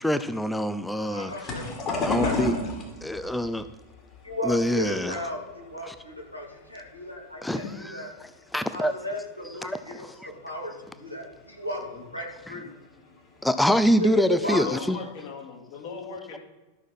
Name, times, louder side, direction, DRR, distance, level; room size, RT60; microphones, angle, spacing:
voice 1, 0.0-1.3 2.0-2.5 3.0-3.7 4.4-5.2 5.8-5.9 7.4-7.6 8.5-8.9 9.6-10.3 13.4-15.0, equal, 5° left, 12 dB, 0.5 m, -25 dB
voice 2, 1.0-2.7 4.2-7.6 7.9-8.1 8.7-12.7 14.0-14.6, equal, 85° left, -2 dB, 2.4 m, -35 dB
sound 1, 1.3-6.4 6.8-7.6 8.1-8.5 8.7-8.8 10.0-10.1 10.7-10.8 11.3-11.4 11.6-12.0 13.2-13.4 13.9-14.0 14.4-14.9, left 2 dB, 30° left, 2.4 m, -32 dB
voice 3, 4.0-4.3 7.6-7.7 11.8-12.0 14.5-16.4, left 6 dB, 50° left, 0 dB, 2.7 m, -38 dB
12.5 x 6.3 x 5.5 m, 1.2 s
figure-of-eight pair, 90°, 0 cm